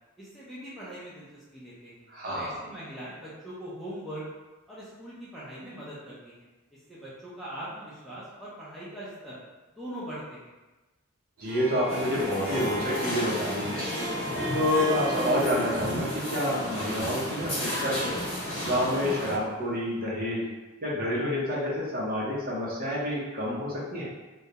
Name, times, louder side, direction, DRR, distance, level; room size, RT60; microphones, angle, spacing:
voice 1, 0.2-1.3 1.5-4.2 4.7-6.5 6.9-9.4 9.8-10.5, right 1 dB, ahead, -10 dB, 0.4 m, -41 dB
voice 2, 2.1-2.6 11.4-13.9 14.5-18.2 18.6-20.4 20.8-24.0, equal, 45° right, -6 dB, 0.6 m, -28 dB
Harp, 11.4-19.7, equal, 85° right, 0.7 m, -36 dB
sound 1, 11.9-19.3, left 1 dB, 45° left, 1.1 m, -33 dB
2.3 x 2.0 x 2.7 m, 1.1 s
head